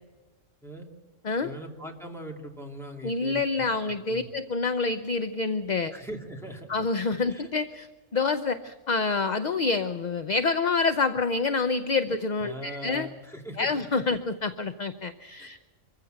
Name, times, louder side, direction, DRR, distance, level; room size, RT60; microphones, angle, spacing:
voice 1, 1.4-3.7 4.1-4.3 5.9-6.8 7.2-7.5 12.4-14.0 15.4-15.5, equal, ahead, 0 dB, 2.9 m, -40 dB
voice 2, 3.0-5.9 6.7-13.1 13.6-15.7, left 4 dB, 40° left, 10 dB, 0.7 m, -27 dB
25.0 x 15.0 x 7.9 m, 1.4 s
omnidirectional pair, 1.4 m